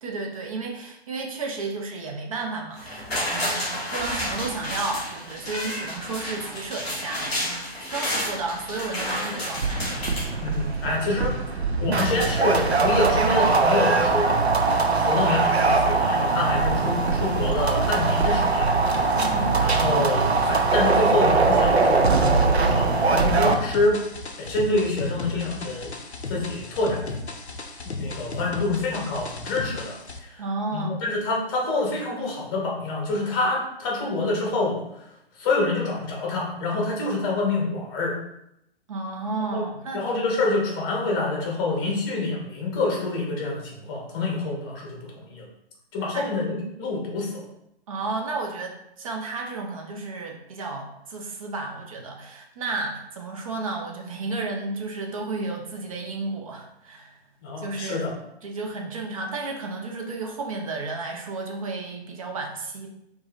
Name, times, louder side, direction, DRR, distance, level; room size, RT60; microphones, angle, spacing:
voice 1, 0.0-9.8 19.2-19.6 30.4-30.9 38.9-40.1 46.1-46.3 47.9-57.2 57.6-58.0 58.4-62.9, right 3 dB, 35° right, 2 dB, 0.6 m, -32 dB
sound 1, 2.8-10.9 11.3-11.4, left 1 dB, ahead, 0.4 m, -31 dB
sound 2, 9.6-23.5, right 3 dB, 80° right, 0.6 m, -21 dB
voice 2, 10.4-14.4 14.7-18.7 19.6-22.1 22.4-24.0 24.4-25.9 26.3-27.2 27.8-30.4 30.7-35.1 35.4-38.1 39.5-39.6 39.9-45.5 45.9-47.5 57.4-58.1, left 2 dB, 20° left, -2 dB, 0.9 m, -27 dB
sound 3, 23.5-30.2, left 3 dB, 90° left, 0.6 m, -35 dB
4.6 x 2.6 x 3.0 m, 0.81 s
figure-of-eight pair, 125°, 32 cm